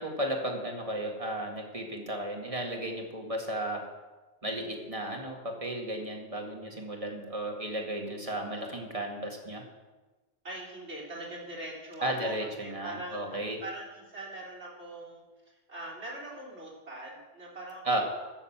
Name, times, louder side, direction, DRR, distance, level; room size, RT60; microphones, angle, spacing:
voice 1, 0.0-3.9 4.4-9.6 12.0-13.6 17.8-18.0, right 1 dB, 30° right, 1 dB, 2.1 m, -34 dB
voice 2, 10.4-12.3 12.6-15.2 15.7-18.0, right 2 dB, 65° right, -3 dB, 3.9 m, -42 dB
15.0 x 6.9 x 7.3 m, 1.2 s
omnidirectional pair, 1.3 m